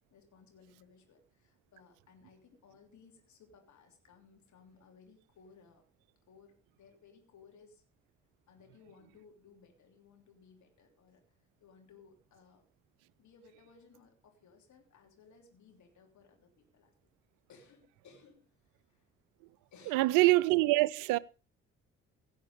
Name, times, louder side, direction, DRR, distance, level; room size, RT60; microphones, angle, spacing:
voice 1, 0.0-5.8 6.3-7.8 8.5-12.6 13.2-16.9 17.5-19.1 19.7-20.2, left 5 dB, 50° left, 3.2 m, -61 dB
voice 2, 19.9-21.2, right 20 dB, 60° right, 0.6 m, -25 dB
16.5 x 8.1 x 5.2 m
figure-of-eight pair, 40°, 36 cm